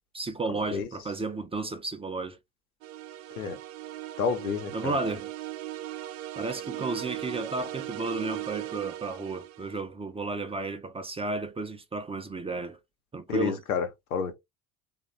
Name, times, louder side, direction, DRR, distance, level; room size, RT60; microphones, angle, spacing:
voice 1, 0.1-2.4 4.7-5.3 6.4-12.8 13.1-13.6, right 3 dB, 15° right, 0.5 m, -33 dB
sound 1, 2.8-9.8, right 14 dB, 60° right, 0.5 m, -38 dB
voice 2, 4.2-5.0 13.3-14.4, left 6 dB, 80° left, 0.9 m, -30 dB
3.1 x 2.4 x 3.8 m
figure-of-eight pair, 65°, 42 cm